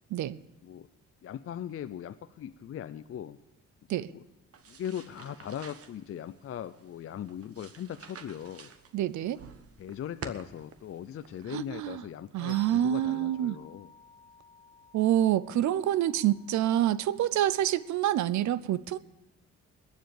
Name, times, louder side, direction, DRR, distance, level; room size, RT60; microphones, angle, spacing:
voice 1, 1.2-3.4 3.9-4.2 4.7-8.7 9.8-13.9, left 10 dB, 50° left, 0.5 m, -39 dB
sound 1, 4.5-12.0, right 6 dB, 50° right, 1.2 m, -49 dB
voice 2, 8.9-9.4 11.5-12.0 12.3-13.6 14.9-19.0, right 12 dB, 70° right, 0.6 m, -27 dB
sound 2, 10.7-18.0, left 3 dB, 25° right, 6.4 m, -55 dB
20.5 x 7.4 x 6.6 m
cardioid pair, 90°, 30 cm